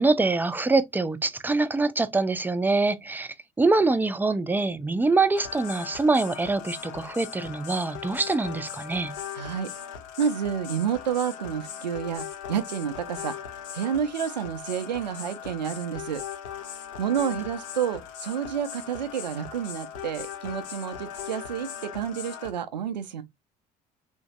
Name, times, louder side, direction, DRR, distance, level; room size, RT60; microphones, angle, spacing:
voice 1, 0.0-9.2, right 3 dB, 10° right, 0.4 m, -24 dB
sound 1, 5.3-22.5, left 8 dB, 60° left, 0.7 m, -39 dB
voice 2, 9.3-9.7 10.2-13.4 13.7-16.2 17.0-23.2, right 8 dB, 85° right, 0.4 m, -29 dB
3.1 x 2.6 x 2.3 m
figure-of-eight pair, 60°, 21 cm